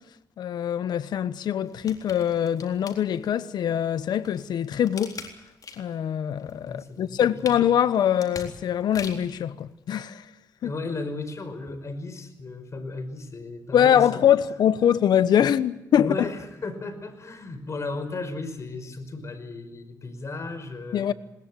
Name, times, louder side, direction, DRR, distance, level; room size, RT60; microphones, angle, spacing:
voice 1, 0.4-5.2 5.8-10.2 10.6-10.7 13.7-16.3 20.9-21.1, left 9 dB, 85° left, 1.1 m, -23 dB
sound 1, 1.7-3.5 4.0-6.0 6.4-9.4 9.9-10.0, left 5 dB, 60° left, 3.9 m, -42 dB
voice 2, 6.7-7.2 10.6-14.2 15.9-21.1, left 3 dB, 45° left, 5.3 m, -35 dB
21.0 x 20.0 x 9.1 m
cardioid pair, 85°, 7 cm